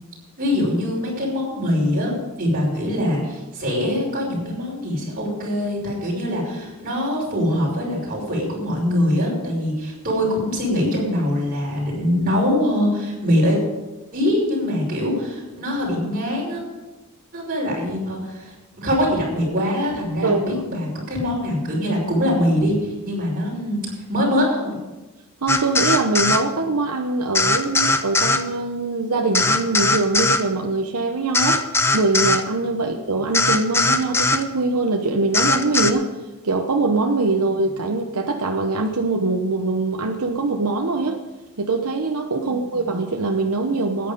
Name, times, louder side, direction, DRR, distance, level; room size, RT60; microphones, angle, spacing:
voice 1, 0.4-2.1 2.4-13.6 14.1-16.6 17.3-24.8 42.4-42.6, left 1 dB, 40° right, -3 dB, 5.6 m, -23 dB
voice 2, 25.4-31.6 31.9-36.1 36.4-41.2 41.6-44.1, right 3 dB, 85° right, 3 dB, 1.0 m, -23 dB
sound 1, 25.5-26.4 27.3-28.4 29.3-30.4 31.3-32.4 33.3-34.4 35.3-35.9, left 3 dB, 10° left, 0.6 m, -19 dB
14.0 x 9.9 x 5.3 m, 1.1 s
head